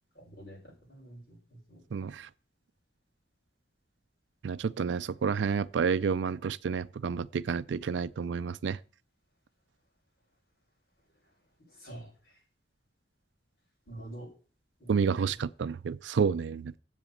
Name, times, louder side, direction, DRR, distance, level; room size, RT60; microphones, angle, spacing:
voice 1, 0.2-0.6 0.9-1.4 1.7-1.8 11.8-12.1 13.9-14.3 14.8-15.2, right 1 dB, 60° left, 6.3 m, -45 dB
voice 2, 1.9-2.3 4.4-8.8 14.9-16.8, right 6 dB, 85° right, 0.4 m, -30 dB
7.4 x 7.1 x 8.0 m
head